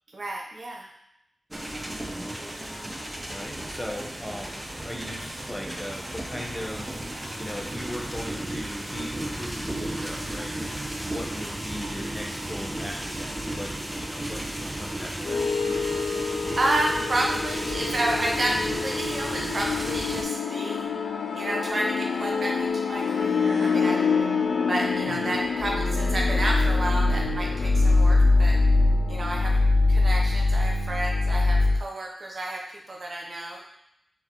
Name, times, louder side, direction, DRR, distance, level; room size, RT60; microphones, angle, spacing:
voice 1, 0.1-0.9 2.4-2.6 16.6-20.9 21.3-24.1 24.7-28.6 29.1-29.6 29.9-33.6, right 1 dB, 60° right, -1 dB, 0.8 m, -30 dB
sound 1, 1.5-20.2, right 1 dB, 20° right, 0.6 m, -34 dB
voice 2, 3.3-10.8 11.1-15.5 25.1-25.4, equal, 15° left, -1 dB, 0.9 m, -39 dB
sound 2, 15.2-31.8, left 3 dB, 85° left, 0.3 m, -24 dB
3.9 x 3.4 x 3.1 m, 0.79 s
cardioid pair, 50°, 0 cm